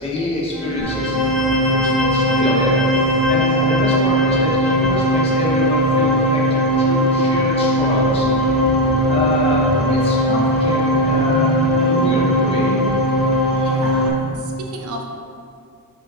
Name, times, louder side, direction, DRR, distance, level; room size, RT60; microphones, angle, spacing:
voice 1, 0.0-1.5 1.8-2.8 3.3-8.3 9.1-12.8 13.5-14.0, left 2 dB, 25° left, -4 dB, 0.9 m, -27 dB
sound 1, 0.5-14.1, equal, ahead, 0.7 m, -18 dB
sound 2, 0.8-14.3, equal, 45° right, 0.7 m, -34 dB
sound 3, 7.9-12.9, left 2 dB, 55° left, 0.5 m, -30 dB
voice 2, 13.6-15.0, right 1 dB, 85° right, 1 dB, 0.8 m, -33 dB
5.2 x 4.4 x 4.9 m, 2.4 s
head